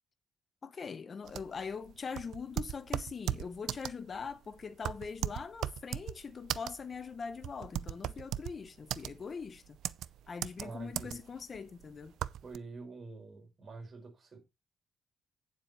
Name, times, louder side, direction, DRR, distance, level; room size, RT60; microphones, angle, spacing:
voice 1, 0.6-9.8 10.3-12.2, left 5 dB, 40° left, 0.8 m, -42 dB
sound 1, 1.3-12.6, right 11 dB, 80° right, 0.4 m, -38 dB
voice 2, 10.6-11.2 12.4-14.4, right 3 dB, 40° right, 4.7 m, -46 dB
9.2 x 7.3 x 4.1 m
cardioid pair, 115°, 0 cm